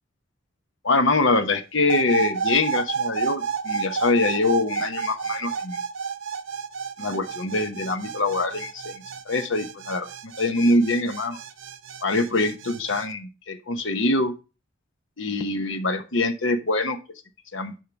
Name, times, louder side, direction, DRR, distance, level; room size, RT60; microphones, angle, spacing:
voice 1, 0.8-5.8 7.0-10.1 10.4-11.4 12.0-14.3 15.2-17.0 17.5-17.7, left 2 dB, 65° left, 7 dB, 1.1 m, -24 dB
sound 1, 1.9-13.1, right 6 dB, 65° right, 0.7 m, -31 dB
10.5 x 5.7 x 3.4 m, 0.30 s
head